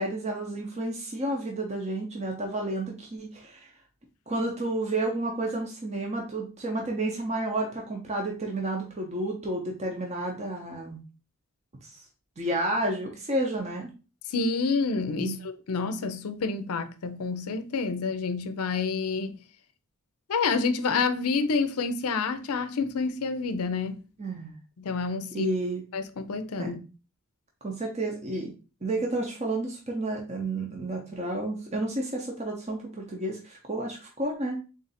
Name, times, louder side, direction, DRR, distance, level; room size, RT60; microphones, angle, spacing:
voice 1, 0.0-3.7 4.3-11.0 11.8-11.9 12.4-13.9 15.2-15.3 24.2-24.6 25.3-25.8 26.6-26.8 27.6-28.5 28.8-34.6, right 2 dB, 30° right, 0.7 m, -31 dB
voice 2, 14.3-19.4 20.3-24.0 24.8-25.5 25.9-26.8, left 4 dB, 80° left, 0.5 m, -28 dB
3.7 x 2.5 x 4.0 m
head